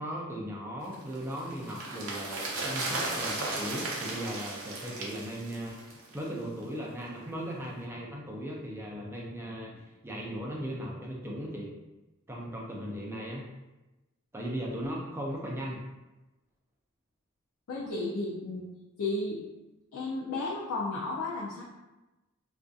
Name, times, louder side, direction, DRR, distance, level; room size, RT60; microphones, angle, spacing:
voice 1, 0.0-5.8 6.1-11.7 12.3-13.5 14.3-15.8, equal, 10° right, -3 dB, 0.4 m, -37 dB
sound 1, 0.9-6.3 6.6-6.7, right 2 dB, 65° right, 0.6 m, -36 dB
voice 2, 17.7-18.7 19.0-19.4 19.9-21.6, left 2 dB, 75° left, -4 dB, 0.4 m, -33 dB
2.5 x 2.4 x 2.3 m, 1.1 s
head